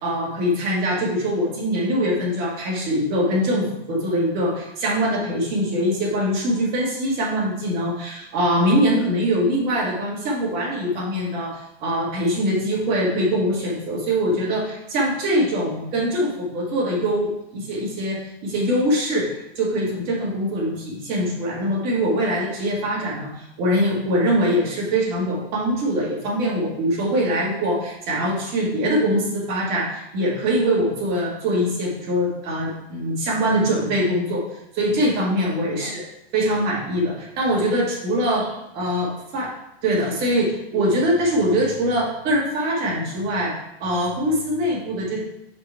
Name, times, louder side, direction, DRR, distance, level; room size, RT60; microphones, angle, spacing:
voice 1, 0.0-34.4 34.7-36.0 36.3-38.5 38.7-39.5 39.8-43.5 43.8-45.2, equal, 30° right, -3 dB, 1.8 m, -23 dB
5.1 x 5.1 x 4.6 m, 0.84 s
supercardioid pair, 160°, 31 cm